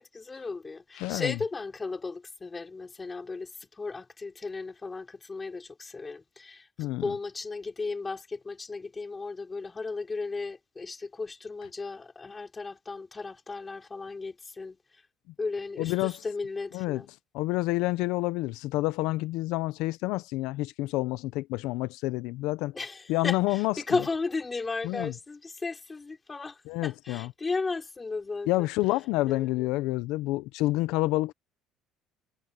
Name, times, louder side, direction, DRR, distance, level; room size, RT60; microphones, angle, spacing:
voice 1, 0.0-14.8 15.4-17.1 22.7-28.7 29.3-29.7, left 4 dB, 20° left, 5.5 m, -35 dB
voice 2, 1.0-1.4 6.8-7.0 15.8-16.2 16.7-17.0 17.3-22.7 23.1-23.7 24.8-25.1 26.7-27.3 28.5-31.3, left 19 dB, 85° left, 0.6 m, -28 dB
cardioid pair, 140°, 0 cm